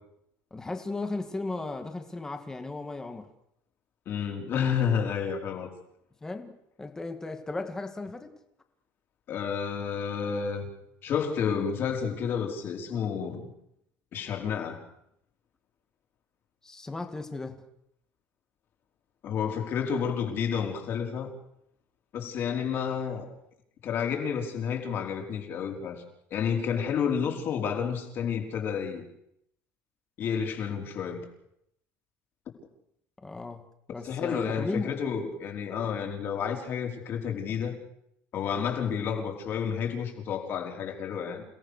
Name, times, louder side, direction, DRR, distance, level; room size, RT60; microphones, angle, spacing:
voice 1, 0.5-3.3 6.2-8.3 16.6-17.5 33.2-33.6 33.9-34.9, left 3 dB, 10° left, 7 dB, 1.9 m, -36 dB
voice 2, 4.1-5.7 9.3-10.7 11.0-13.5 14.1-14.8 19.2-21.3 22.1-23.3 23.8-26.0 26.3-29.0 30.2-31.2 34.0-37.8 38.3-41.4, left 7 dB, 40° left, 2 dB, 4.5 m, -30 dB
29.0 x 18.5 x 6.6 m, 0.76 s
cardioid pair, 175°, 6 cm